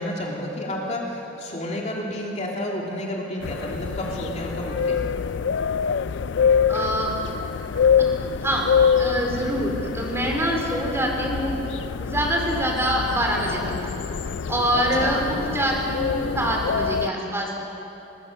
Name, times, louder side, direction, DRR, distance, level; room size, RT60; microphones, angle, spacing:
voice 1, 0.0-5.0 14.7-15.1, left 1 dB, 40° left, -1 dB, 2.8 m, -30 dB
sound 1, 3.4-17.1, left 6 dB, 75° left, 0.4 m, -25 dB
voice 2, 6.7-7.1 8.0-8.1 8.4-8.6 9.0-11.6 12.0-13.7 14.5-17.6, right 1 dB, 15° right, 0 dB, 3.3 m, -25 dB
22.5 x 20.0 x 6.6 m, 3.0 s
head